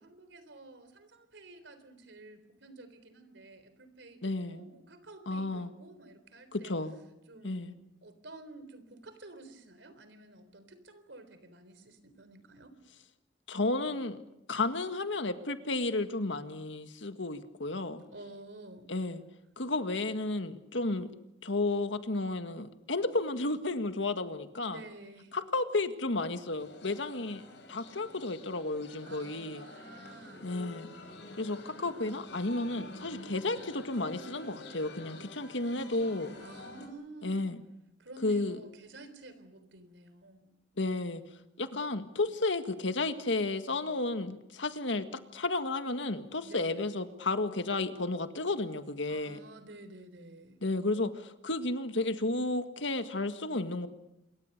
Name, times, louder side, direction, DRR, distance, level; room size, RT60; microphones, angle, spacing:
voice 1, 0.0-6.7 7.3-7.7 8.0-12.7 18.0-18.9 24.7-25.4 29.0-30.6 36.4-37.5 38.0-40.6 46.4-46.9 49.1-50.6, right 2 dB, 75° right, 11 dB, 3.7 m, -51 dB
voice 2, 4.2-4.6 5.3-5.7 6.5-6.9 7.4-7.7 13.5-14.2 14.5-18.0 18.9-19.2 19.6-21.1 21.4-24.8 25.3-29.6 30.4-30.9 31.4-36.3 37.2-37.6 38.2-38.6 40.8-41.2 41.6-45.1 45.3-49.4 50.6-53.9, left 2 dB, 85° left, 9 dB, 1.8 m, -32 dB
sound 1, 26.6-36.9, left 2 dB, 70° left, 5.2 m, -48 dB
27.0 x 23.0 x 6.7 m, 0.87 s
head